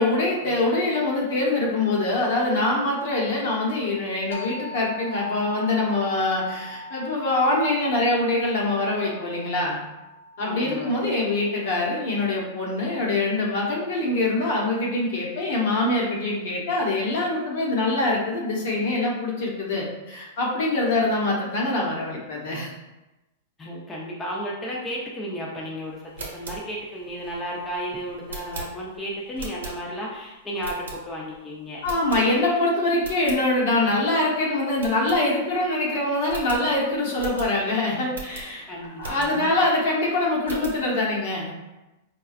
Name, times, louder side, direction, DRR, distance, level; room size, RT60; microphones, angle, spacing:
voice 1, 0.0-9.8 10.4-22.7 31.8-38.7 39.0-41.5, left 2 dB, 65° left, -3 dB, 1.1 m, -24 dB
sound 1, 4.3-13.7, left 1 dB, 85° left, 0.6 m, -42 dB
voice 2, 10.4-10.9 23.6-31.8 38.7-39.5, equal, 15° left, -4 dB, 0.7 m, -33 dB
sound 2, 26.0-30.1 30.6-31.4 31.8-32.6 32.9-33.4 33.9-34.0 34.2-34.3 34.8-35.7 35.9-36.0 36.3-39.6 40.0-40.9, right 4 dB, 90° right, 0.9 m, -40 dB
4.5 x 2.3 x 2.4 m, 1.0 s
hypercardioid pair, 125°, 0 cm